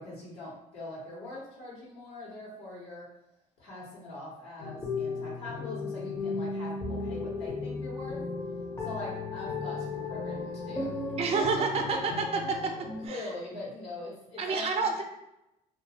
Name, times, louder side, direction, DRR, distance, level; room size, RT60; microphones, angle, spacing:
voice 1, 0.0-3.1 3.6-8.2 8.8-10.9 11.5-12.2 13.1-14.9, left 2 dB, 80° left, -7 dB, 1.0 m, -42 dB
sound 1, 4.6-13.1, left 3 dB, 20° left, 0.5 m, -35 dB
voice 2, 11.2-12.7 13.0-13.3 14.4-15.0, right 4 dB, 35° right, 3 dB, 0.5 m, -29 dB
2.3 x 2.2 x 2.8 m, 0.88 s
cardioid pair, 110°, 17 cm